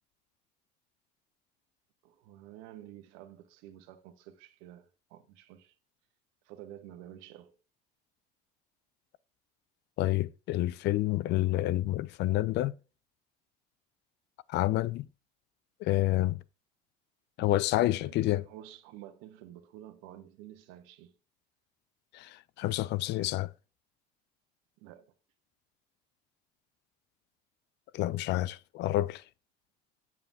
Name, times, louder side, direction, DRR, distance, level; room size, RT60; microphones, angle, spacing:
voice 1, 2.0-5.8 6.4-7.6 17.8-21.1 24.8-25.1, right 12 dB, 75° right, 1.0 m, -50 dB
voice 2, 10.0-12.7 14.5-15.1 15.8-16.4 17.4-18.4 22.1-23.5 27.9-29.2, left 15 dB, 55° left, 0.4 m, -28 dB
7.5 x 6.9 x 2.6 m
hypercardioid pair, 75°, 21 cm